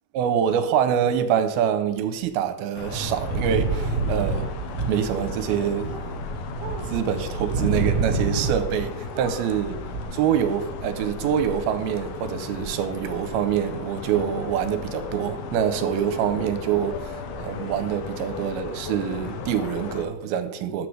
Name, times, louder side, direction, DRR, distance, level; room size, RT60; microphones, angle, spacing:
voice 1, 0.1-4.5 4.9-6.0 6.9-9.8 10.1-20.9, right 8 dB, 85° right, 2.5 m, -25 dB
sound 1, 2.7-20.0, left 4 dB, 75° left, 2.7 m, -36 dB
sound 2, 2.9-8.9 9.1-10.0, right 3 dB, 65° right, 1.6 m, -28 dB
13.0 x 6.8 x 3.3 m
omnidirectional pair, 4.5 m